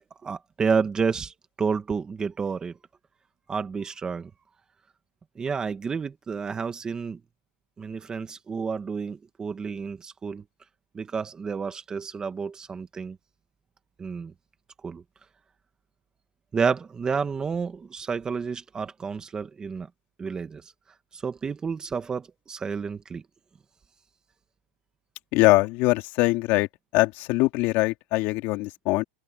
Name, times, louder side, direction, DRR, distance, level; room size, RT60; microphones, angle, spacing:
voice 1, 0.0-2.7 3.5-4.3 5.3-7.2 7.8-10.4 10.9-13.2 14.0-14.3 14.8-15.0 16.5-19.9 20.2-20.7 21.1-23.2, right 5 dB, 15° right, 1.4 m, -30 dB
voice 2, 25.3-26.7 26.9-29.0, left 21 dB, 45° left, 2.8 m, -22 dB
supercardioid pair, 155°, 5 cm